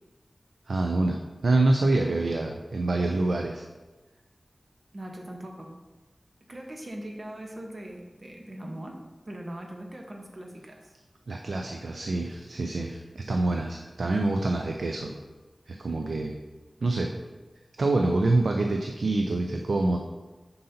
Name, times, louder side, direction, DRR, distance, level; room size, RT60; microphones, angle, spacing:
voice 1, 0.7-1.2 1.4-3.6 11.3-15.1 15.7-16.3 16.8-17.1 17.8-20.0, right 2 dB, 85° right, 3 dB, 0.4 m, -26 dB
voice 2, 4.9-5.8 6.5-9.0 9.2-11.0, right 1 dB, 50° right, 1 dB, 1.0 m, -40 dB
7.6 x 5.4 x 2.8 m, 1.2 s
wide cardioid pair, 50°, 0 cm